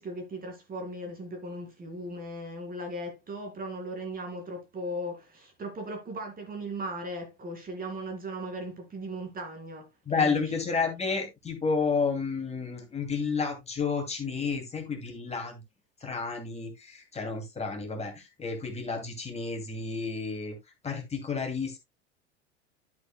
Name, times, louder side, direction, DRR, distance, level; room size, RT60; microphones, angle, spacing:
voice 1, 0.0-10.6, right 1 dB, 25° right, 2.3 m, -38 dB
voice 2, 10.1-15.6 16.0-20.6 20.8-21.8, left 5 dB, 20° left, 2.5 m, -31 dB
11.0 x 7.9 x 2.2 m
figure-of-eight pair, 80°, 36 cm